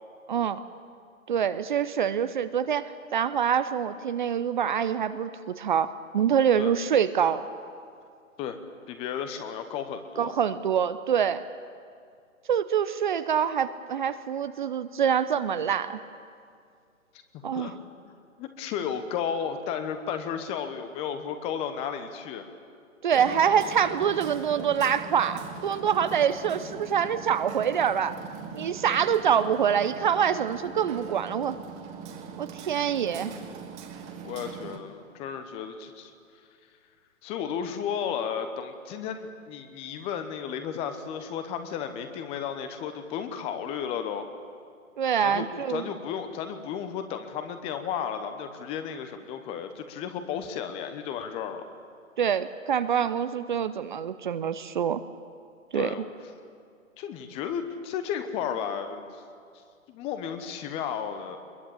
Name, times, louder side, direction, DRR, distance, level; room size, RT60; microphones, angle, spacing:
voice 1, 0.3-0.6 1.3-7.5 10.2-11.4 12.5-16.0 17.4-17.7 23.0-28.2 28.5-31.6 32.4-33.3 45.0-45.8 52.2-55.0 55.7-55.9, right 8 dB, 35° right, 13 dB, 0.8 m, -25 dB
voice 2, 8.9-10.3 17.5-17.7 18.0-18.1 18.4-22.4 34.2-36.1 37.2-44.3 45.2-51.6 55.7-56.1 57.0-59.2 59.9-61.4, left 8 dB, 15° left, 9 dB, 1.0 m, -33 dB
Hammer, 23.1-34.8, right 6 dB, 15° right, 1.6 m, -41 dB
22.5 x 21.5 x 8.7 m, 2.3 s
figure-of-eight pair, 135°, 40 cm